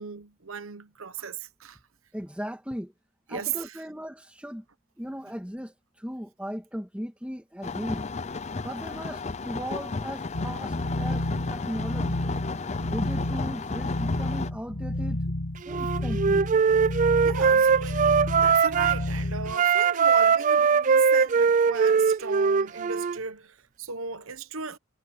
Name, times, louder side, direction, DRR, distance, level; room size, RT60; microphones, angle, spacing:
voice 1, 0.0-1.8 3.3-3.8 17.2-24.8, right 5 dB, 75° right, 1.0 m, -36 dB
voice 2, 2.1-2.9 3.3-4.6 5.0-8.1 8.6-12.3 12.9-15.3 15.7-16.5, equal, 5° right, 2.1 m, -37 dB
sound 1, 7.6-14.5, left 4 dB, 30° left, 0.5 m, -34 dB
sound 2, 10.3-19.6, left 1 dB, 75° left, 1.7 m, -31 dB
Wind instrument woodwind instrument, 15.7-19.0 19.5-23.2, right 6 dB, 35° right, 0.3 m, -21 dB
head